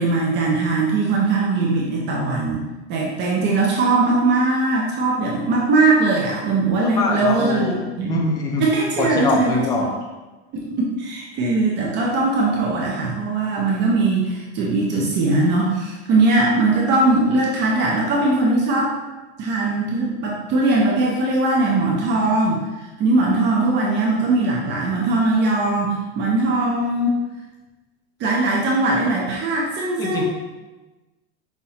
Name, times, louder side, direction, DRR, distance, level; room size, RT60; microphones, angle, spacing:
voice 1, 0.0-2.6 2.9-8.1 8.6-9.9 10.5-19.0 19.4-22.6 23.0-27.2 28.2-30.2, right 2 dB, 35° right, -2 dB, 0.6 m, -20 dB
voice 2, 7.0-8.7 9.0-9.8 30.0-30.2, left 3 dB, 10° left, 1 dB, 0.3 m, -23 dB
5.6 x 3.0 x 2.8 m, 1.2 s
supercardioid pair, 155°, 33 cm